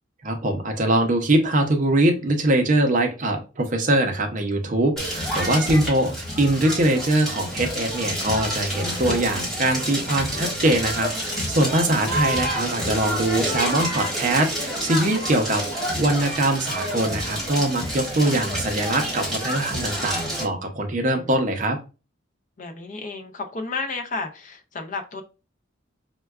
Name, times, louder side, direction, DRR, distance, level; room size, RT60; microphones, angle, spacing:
voice 1, 0.2-21.8, right 1 dB, 40° right, 4 dB, 0.5 m, -22 dB
Crackle, 5.0-20.4, equal, ahead, 1.4 m, -28 dB
voice 2, 22.6-25.2, left 3 dB, 40° left, 5 dB, 0.5 m, -33 dB
4.4 x 2.2 x 2.2 m, 0.31 s
head